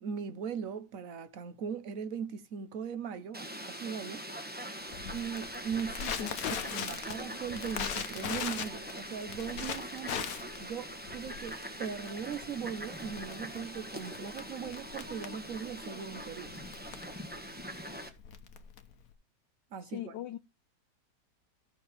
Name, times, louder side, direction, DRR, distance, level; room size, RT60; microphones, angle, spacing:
voice 1, 0.0-4.5 5.1-6.3 6.7-16.5 19.7-20.1, right 7 dB, 55° right, 1.3 m, -39 dB
Fowl, 3.3-18.1, equal, 5° right, 1.2 m, -43 dB
Crackle, 4.9-19.1, left 8 dB, 60° left, 1.3 m, -40 dB
voice 2, 6.2-6.5 19.8-20.4, left 12 dB, 80° left, 1.3 m, -39 dB
14.5 x 6.2 x 3.3 m
omnidirectional pair, 1.8 m